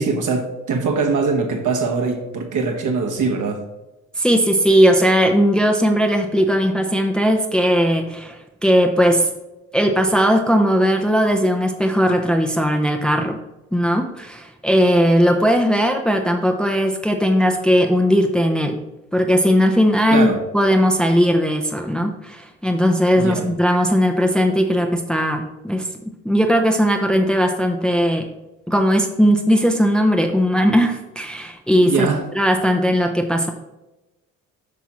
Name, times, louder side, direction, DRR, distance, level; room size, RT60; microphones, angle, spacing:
voice 1, 0.0-3.6 20.1-20.4 23.2-23.5 31.9-32.3, right 4 dB, 50° right, 3 dB, 1.6 m, -22 dB
voice 2, 4.2-9.3 9.7-13.4 13.7-18.8 19.1-28.3 28.7-32.1 32.3-33.5, equal, ahead, 4 dB, 0.9 m, -18 dB
8.4 x 5.8 x 3.1 m, 1.0 s
hypercardioid pair, 55°, 40 cm